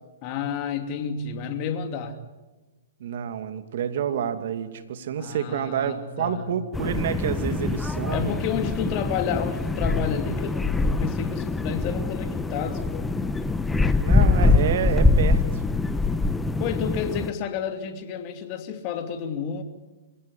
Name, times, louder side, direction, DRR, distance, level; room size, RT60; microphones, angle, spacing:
voice 1, 0.2-2.2 5.2-6.5 8.1-13.1 16.6-19.6, left 7 dB, 40° left, 7 dB, 2.7 m, -30 dB
voice 2, 3.0-8.3 14.0-15.6, right 8 dB, 60° right, 9 dB, 2.5 m, -28 dB
sound 1, 6.7-17.3, left 3 dB, 5° left, 1.0 m, -24 dB
26.5 x 17.0 x 9.9 m, 1.1 s
hypercardioid pair, 125°, 0 cm